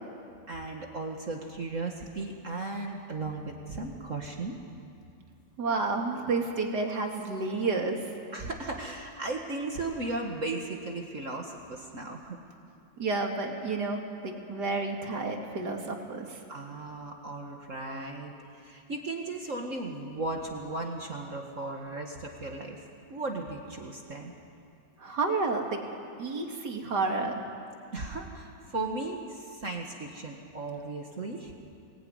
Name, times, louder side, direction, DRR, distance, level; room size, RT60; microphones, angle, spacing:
voice 1, 0.5-4.5 8.3-12.4 16.5-22.8 23.1-24.3 27.9-31.5, right 2 dB, 40° right, 1 dB, 1.9 m, -36 dB
voice 2, 5.6-8.0 13.0-16.4 25.0-25.8 26.2-27.4, right 3 dB, 60° right, 2 dB, 2.9 m, -30 dB
24.5 x 19.5 x 9.6 m, 2.5 s
omnidirectional pair, 2.1 m